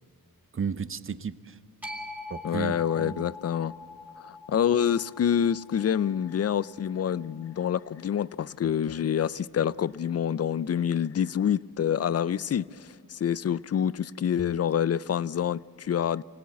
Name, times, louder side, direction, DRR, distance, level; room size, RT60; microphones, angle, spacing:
voice 1, 0.5-1.6 2.3-3.3, right 6 dB, 35° right, 0.7 m, -34 dB
sound 1, 1.8-8.0, left 2 dB, 5° right, 2.2 m, -45 dB
voice 2, 2.4-3.7 4.2-16.2, left 9 dB, 45° left, 0.5 m, -27 dB
25.0 x 17.5 x 8.4 m
cardioid pair, 70°, 36 cm